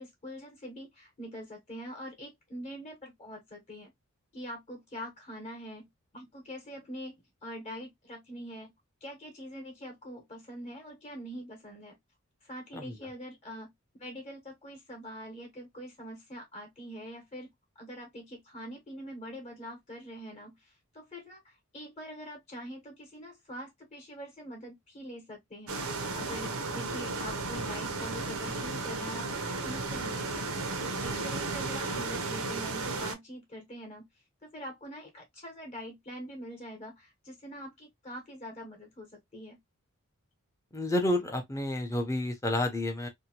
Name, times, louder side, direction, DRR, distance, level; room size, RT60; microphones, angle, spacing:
voice 1, 0.0-3.9 4.3-8.7 9.0-12.0 12.4-13.7 14.0-17.5 17.8-34.0 34.4-39.6, equal, 30° left, 0.9 m, -44 dB
sound 1, 25.7-33.1, right 3 dB, 85° right, 0.7 m, -34 dB
voice 2, 40.7-43.1, left 1 dB, 15° left, 0.6 m, -30 dB
2.7 x 2.1 x 2.8 m
head